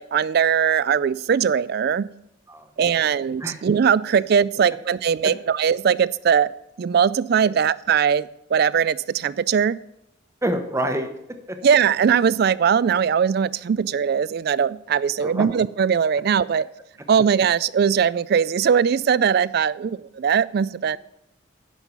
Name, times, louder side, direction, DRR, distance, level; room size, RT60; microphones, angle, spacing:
voice 1, 0.0-2.1 2.8-6.5 6.8-9.8 11.6-16.7 17.1-21.0, right 7 dB, 50° right, 20 dB, 0.3 m, -20 dB
voice 2, 10.4-11.1 11.5-11.6 15.2-15.5, right 1 dB, 15° right, 6 dB, 1.0 m, -27 dB
10.5 x 5.6 x 6.9 m, 0.82 s
head